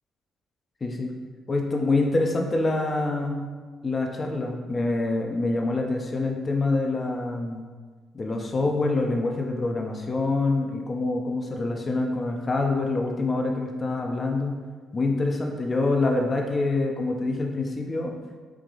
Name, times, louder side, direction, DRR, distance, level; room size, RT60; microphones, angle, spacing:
voice 1, 0.8-1.1 1.5-3.4 3.8-7.6 8.1-14.6 14.9-18.1, left 2 dB, 35° left, 2 dB, 0.7 m, -26 dB
4.7 x 2.9 x 3.8 m, 1.4 s
cardioid pair, 90°, 0 cm